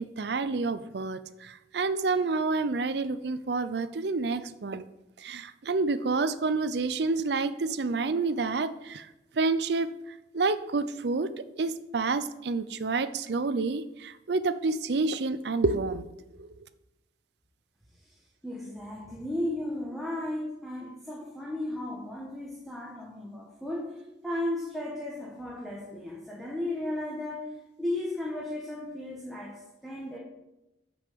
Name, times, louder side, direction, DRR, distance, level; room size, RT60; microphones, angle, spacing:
voice 1, 0.0-4.9 5.2-9.1 9.4-9.9 10.3-11.3 11.6-16.1, right 3 dB, 65° right, 13 dB, 0.5 m, -28 dB
voice 2, 18.4-24.0 24.2-30.2, left 1 dB, ahead, -4 dB, 1.3 m, -35 dB
7.4 x 5.4 x 6.8 m, 0.95 s
head